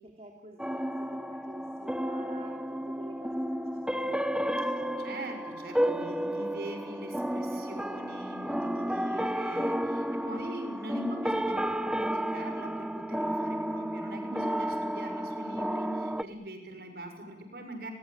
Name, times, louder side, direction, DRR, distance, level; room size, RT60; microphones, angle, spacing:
voice 1, 0.0-5.1 10.6-11.0, right 1 dB, 35° right, 3 dB, 3.1 m, -51 dB
sound 1, 0.6-16.2, equal, 5° right, 1.0 m, -32 dB
voice 2, 5.0-17.9, right 1 dB, 55° right, 6 dB, 6.6 m, -42 dB
30.0 x 22.5 x 8.9 m, 1.2 s
head